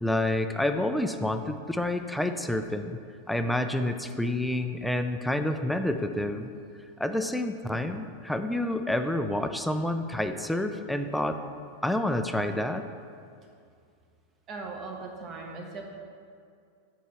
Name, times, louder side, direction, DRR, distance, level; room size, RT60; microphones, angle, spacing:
voice 1, 0.0-3.0 3.3-6.5 7.0-11.4 11.8-12.9, left 1 dB, ahead, 7 dB, 0.4 m, -28 dB
voice 2, 14.5-15.8, right 3 dB, 35° right, 1 dB, 1.2 m, -39 dB
7.3 x 4.6 x 5.6 m, 2.3 s
supercardioid pair, 130°, 0 cm